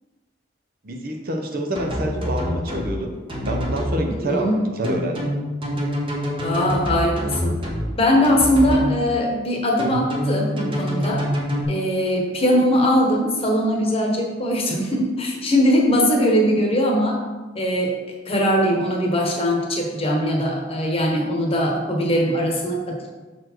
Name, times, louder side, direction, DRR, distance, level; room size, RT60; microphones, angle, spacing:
voice 1, 0.8-5.3, right 1 dB, 50° right, 3 dB, 0.7 m, -27 dB
sound 1, 1.7-2.9 3.3-3.9 4.8-7.8 8.2-8.9 9.8-11.6, equal, 25° right, 1.1 m, -26 dB
voice 2, 4.2-4.6 6.4-7.5 8.0-11.3 11.7-17.2 17.5-17.9 18.3-23.1, equal, 30° left, 0 dB, 1.1 m, -21 dB
6.4 x 4.2 x 4.5 m, 1.3 s
head